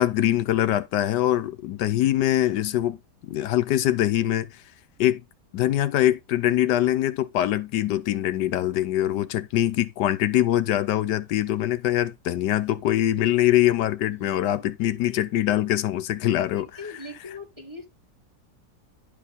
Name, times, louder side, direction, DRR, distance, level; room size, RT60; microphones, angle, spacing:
voice 1, 0.0-3.0 3.2-4.6 5.0-5.2 5.5-16.7, left 13 dB, 85° left, 1.3 m, -23 dB
voice 2, 16.6-17.9, left 2 dB, 15° right, 1.5 m, -40 dB
10.5 x 4.9 x 4.1 m
omnidirectional pair, 1.8 m